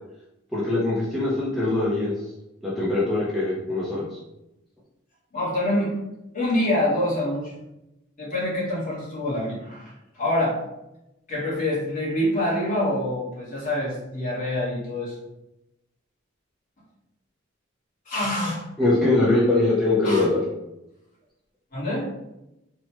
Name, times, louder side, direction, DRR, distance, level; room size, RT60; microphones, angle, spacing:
voice 1, 0.5-2.1 2.6-4.1 18.8-20.4, left 2 dB, ahead, -9 dB, 0.5 m, -22 dB
voice 2, 5.3-6.0 6.3-7.5 8.2-10.6 11.3-15.1 18.0-18.6 20.0-20.3 21.7-22.1, left 1 dB, 45° left, -7 dB, 1.2 m, -26 dB
3.0 x 2.1 x 2.9 m, 0.91 s
head